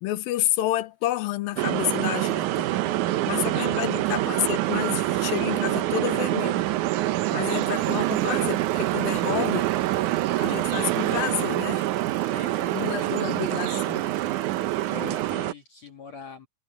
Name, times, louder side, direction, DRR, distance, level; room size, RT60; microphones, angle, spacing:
voice 1, 0.0-2.7 3.3-6.6 7.3-9.7 10.4-11.9 12.7-14.1 14.9-15.2, left 14 dB, 80° left, 2.6 m, -29 dB
Bicycle, 0.9-1.3 1.6-15.3, right 3 dB, 25° right, 4.2 m, -57 dB
sound 1, 1.6-15.5, right 15 dB, 75° right, 1.9 m, -25 dB
voice 2, 2.7-3.2 3.6-3.8 12.2-13.3 14.7-16.5, left 6 dB, 50° left, 2.8 m, -45 dB
omnidirectional pair, 4.2 m